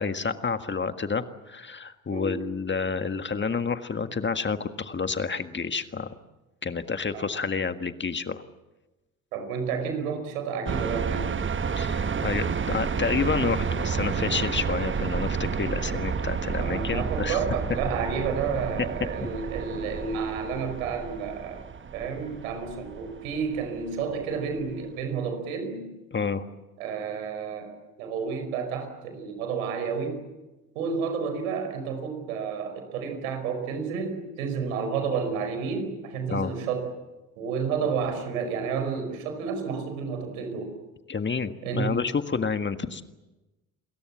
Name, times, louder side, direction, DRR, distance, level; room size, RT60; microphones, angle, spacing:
voice 1, 0.0-6.1 6.6-8.4 11.8-17.4 26.1-26.4 36.3-36.5 41.1-43.0, left 5 dB, 25° left, 9 dB, 1.7 m, -29 dB
voice 2, 2.1-2.4 7.1-7.2 9.3-11.4 16.6-21.6 21.9-25.9 26.8-30.2 30.7-36.9 37.4-40.8 41.6-41.9, right 6 dB, 80° right, 7 dB, 5.2 m, -31 dB
sound 1, 10.7-24.6, right 6 dB, 30° right, 1.4 m, -30 dB
29.5 x 22.0 x 7.4 m, 1.1 s
hypercardioid pair, 55°, 42 cm